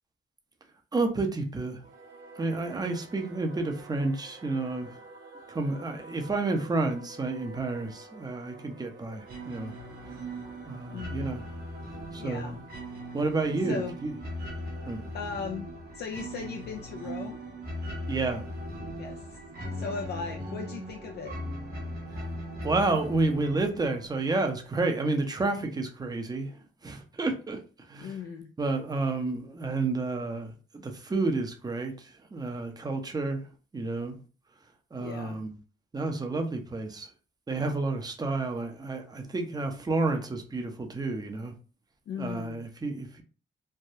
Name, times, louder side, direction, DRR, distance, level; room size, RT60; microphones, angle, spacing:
voice 1, 0.9-1.8 2.4-5.0 5.5-9.7 10.6-11.5 12.1-12.6 13.1-14.1 14.9-15.0 18.1-18.4 22.6-28.2 28.6-30.5 30.8-33.5 33.7-34.2 34.9-35.6 35.9-37.1 37.5-41.5 42.2-43.2, right 3 dB, 20° right, 0.7 m, -30 dB
Singing / Musical instrument, 1.8-14.7, right 2 dB, 75° right, 1.1 m, -51 dB
sound 1, 9.3-24.8, equal, 50° right, 1.2 m, -39 dB
voice 2, 10.9-11.4 12.2-12.6 13.6-14.0 15.1-15.7 15.9-17.4 19.0-19.4 19.7-21.4 28.0-28.5 35.0-35.4 42.1-42.6, left 5 dB, 55° left, 0.4 m, -37 dB
3.3 x 2.2 x 2.7 m
cardioid pair, 90°, 20 cm